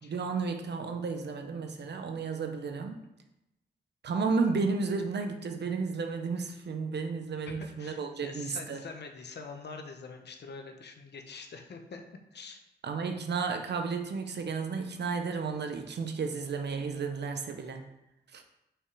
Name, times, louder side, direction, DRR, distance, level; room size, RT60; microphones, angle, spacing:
voice 1, 0.1-3.0 4.0-8.8 12.8-17.8 18.3-18.4, right 4 dB, 70° right, 5 dB, 0.9 m, -32 dB
voice 2, 7.4-12.0 12.3-12.6, left 4 dB, 70° left, 5 dB, 1.0 m, -45 dB
5.7 x 5.5 x 4.8 m, 0.88 s
cardioid pair, 65°, 18 cm